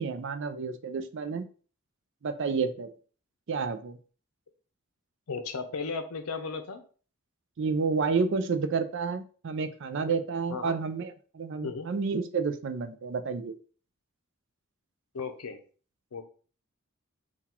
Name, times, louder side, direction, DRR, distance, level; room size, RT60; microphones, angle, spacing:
voice 1, 0.0-1.5 2.2-2.9 3.5-4.0 7.6-13.5, right 5 dB, 55° right, 10 dB, 0.4 m, -30 dB
voice 2, 5.3-6.8 10.5-10.8 11.6-11.9 15.1-15.6 16.1-16.2, left 4 dB, 90° left, 7 dB, 0.7 m, -35 dB
3.9 x 2.3 x 4.2 m, 0.40 s
head